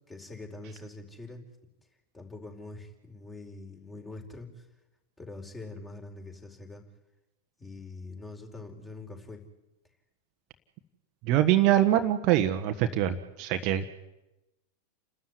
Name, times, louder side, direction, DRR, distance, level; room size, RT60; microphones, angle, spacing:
voice 1, 0.1-1.4 2.1-4.7 5.2-6.8 7.6-9.4, left 2 dB, 15° left, 3 dB, 4.8 m, -44 dB
voice 2, 11.2-13.9, right 12 dB, 40° right, 7 dB, 1.4 m, -24 dB
30.0 x 13.0 x 9.8 m, 0.96 s
figure-of-eight pair, 90°, 0 cm